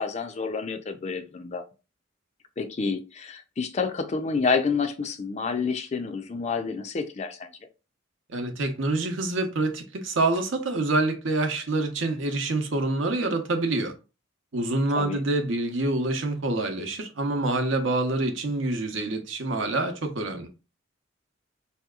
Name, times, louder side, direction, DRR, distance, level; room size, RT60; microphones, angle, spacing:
voice 1, 0.0-1.6 2.6-7.5 15.0-15.2, left 5 dB, 35° left, 0.4 m, -29 dB
voice 2, 8.3-13.9 14.5-20.5, right 2 dB, 70° right, 0.7 m, -26 dB
4.4 x 2.8 x 2.3 m
head